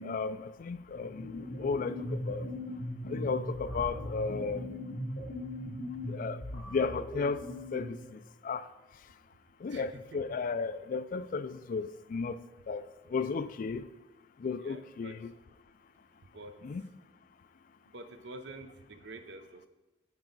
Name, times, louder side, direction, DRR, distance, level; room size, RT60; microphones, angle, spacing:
voice 1, 0.0-2.5 3.1-4.7 6.1-8.7 9.6-12.4 12.7-13.9 14.4-15.3 16.6-16.9, left 4 dB, 45° left, 0.3 m, -34 dB
sound 1, 1.0-8.1, left 1 dB, 65° left, 2.2 m, -39 dB
voice 2, 14.6-15.1 16.2-16.6 17.9-19.7, right 2 dB, 60° right, 0.7 m, -47 dB
9.2 x 4.7 x 4.0 m
head